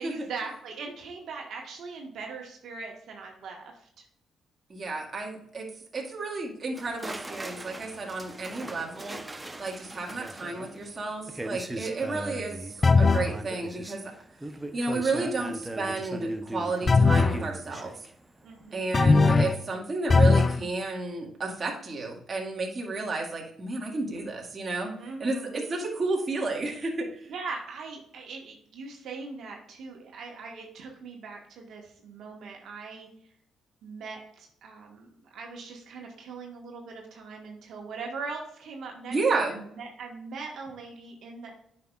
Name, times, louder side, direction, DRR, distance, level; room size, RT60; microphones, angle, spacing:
voice 1, 0.0-4.0 11.8-12.3 18.4-19.3 24.9-25.5 27.3-33.1 33.8-41.5, right 4 dB, 70° right, 1 dB, 1.5 m, -41 dB
voice 2, 4.7-9.2 9.6-14.1 14.7-18.1 18.7-24.9 25.2-27.3 39.1-39.6, right 3 dB, 35° right, -1 dB, 1.9 m, -32 dB
sound 1, 6.7-18.8 19.1-19.4, right 1 dB, 15° right, 0.8 m, -39 dB
sound 2, 12.8-13.3 16.9-17.4 18.9-19.6 20.1-20.6, left 4 dB, 30° left, 0.3 m, -19 dB
9.2 x 5.9 x 2.4 m, 0.72 s
cardioid pair, 90°, 0 cm